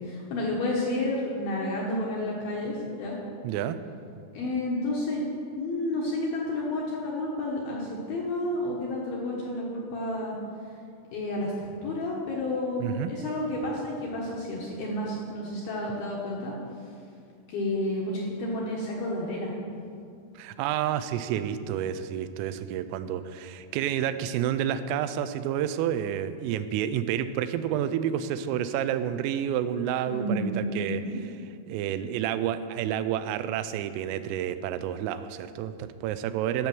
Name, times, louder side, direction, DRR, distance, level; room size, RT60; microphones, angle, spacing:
voice 1, 0.0-3.2 4.3-5.2 5.5-10.4 11.1-16.5 17.5-19.5 30.1-31.2, left 1 dB, 70° left, -4 dB, 2.3 m, -30 dB
voice 2, 3.4-3.8 12.8-13.1 20.4-31.0 31.7-36.7, right 10 dB, 90° right, 12 dB, 3.2 m, -29 dB
13.0 x 7.1 x 6.1 m, 2.5 s
omnidirectional pair, 5.8 m